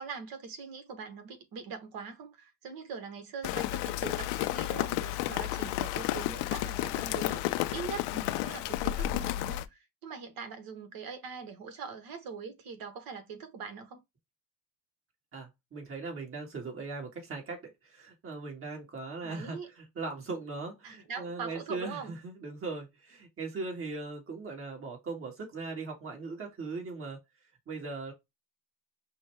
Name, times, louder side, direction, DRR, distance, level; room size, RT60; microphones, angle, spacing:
voice 1, 0.0-14.0 19.2-19.7 20.8-22.2, right 5 dB, 50° right, 1.2 m, -42 dB
Rain, 3.4-9.7, left 15 dB, 70° left, 0.5 m, -32 dB
voice 2, 15.3-27.2 27.7-28.1, right 3 dB, 30° right, 1.8 m, -39 dB
5.3 x 2.2 x 3.3 m
supercardioid pair, 115°, 44 cm